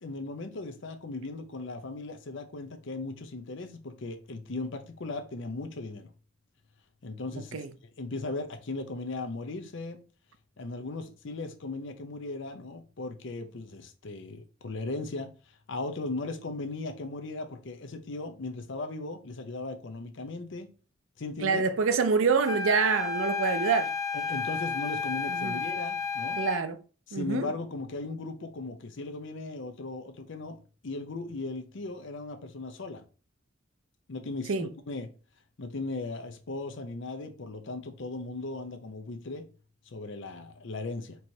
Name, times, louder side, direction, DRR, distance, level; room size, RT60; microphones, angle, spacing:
voice 1, 0.0-6.1 7.0-7.6 8.0-10.0 10.6-15.3 15.7-20.7 21.2-21.6 24.1-26.4 27.1-30.6 30.8-33.0 34.1-35.1 35.6-39.5 39.9-41.2, left 3 dB, 65° left, 0.6 m, -37 dB
voice 2, 21.4-23.9 25.3-25.6 26.4-26.8 27.1-27.5 34.5-34.7, right 5 dB, 80° right, 0.5 m, -26 dB
sound 1, 22.4-26.7, left 5 dB, 15° left, 0.3 m, -32 dB
4.6 x 3.0 x 2.7 m
head